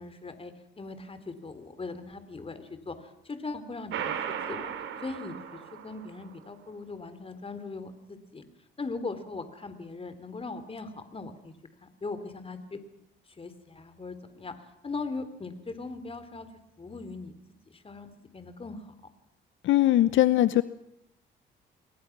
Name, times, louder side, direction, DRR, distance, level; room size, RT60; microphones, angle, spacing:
voice 1, 0.0-4.2 4.5-4.7 5.0-8.4 8.8-11.5 11.8-12.8 13.4-14.5 14.8-16.5 16.8-17.3 17.7-18.9, left 3 dB, 30° left, 10 dB, 3.5 m, -39 dB
sound 1, 3.9-6.3, right 8 dB, 80° right, 3.0 m, -36 dB
voice 2, 19.6-20.6, left 14 dB, 75° left, 14 dB, 0.8 m, -21 dB
28.5 x 22.5 x 6.1 m, 0.80 s
cardioid pair, 90°, 20 cm